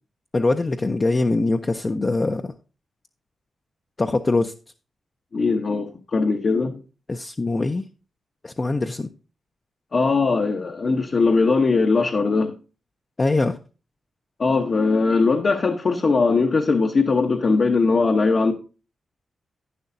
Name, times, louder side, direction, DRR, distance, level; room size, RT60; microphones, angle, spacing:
voice 1, 0.3-2.5 4.0-4.5 7.1-7.9 8.4-9.1 13.2-13.6, left 3 dB, 35° left, 0.5 m, -22 dB
voice 2, 5.3-6.8 9.9-12.5 14.4-18.5, left 4 dB, 55° left, 0.9 m, -20 dB
11.0 x 9.3 x 2.6 m
cardioid pair, 70°, 0 cm